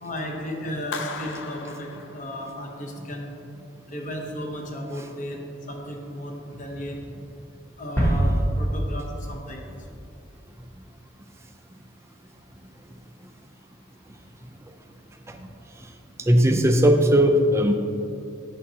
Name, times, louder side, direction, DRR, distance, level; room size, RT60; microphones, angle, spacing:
voice 1, 0.0-3.3 3.9-5.4 5.7-7.0 7.8-9.6 15.3-15.4, equal, 40° left, 1 dB, 0.8 m, -34 dB
Clapping, 0.9-2.8, left 5 dB, 60° left, 0.4 m, -37 dB
sound 1, 8.0-10.5, right 1 dB, 10° left, 0.9 m, -25 dB
voice 2, 16.2-17.7, equal, 15° right, 5 dB, 0.4 m, -18 dB
8.5 x 7.4 x 2.8 m, 2.8 s
head